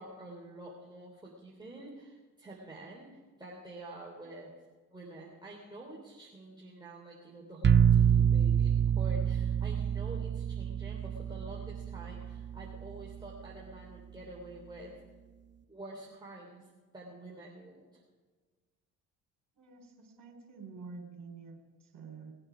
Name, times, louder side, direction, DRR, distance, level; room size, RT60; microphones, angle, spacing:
voice 1, 0.0-3.1 3.4-4.5 4.9-14.9 15.7-18.0, right 1 dB, 10° right, -3 dB, 3.2 m, -48 dB
sound 1, 7.6-13.4, right 8 dB, 30° right, 0.6 m, -27 dB
voice 2, 19.5-22.3, right 4 dB, 50° right, 1 dB, 4.1 m, -48 dB
20.0 x 8.8 x 5.0 m, 1.4 s
hypercardioid pair, 55°, 41 cm